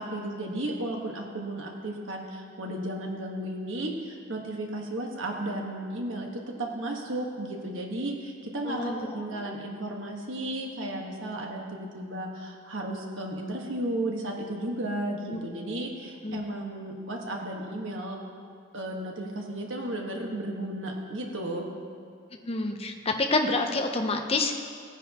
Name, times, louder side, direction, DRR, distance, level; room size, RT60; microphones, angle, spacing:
voice 1, 0.0-18.2 18.7-21.7, right 1 dB, 75° right, 0 dB, 1.5 m, -34 dB
voice 2, 8.7-9.5 15.3-15.4 16.2-16.4 22.4-24.6, left 2 dB, 30° left, 4 dB, 0.7 m, -28 dB
16.5 x 9.8 x 3.0 m, 2.1 s
head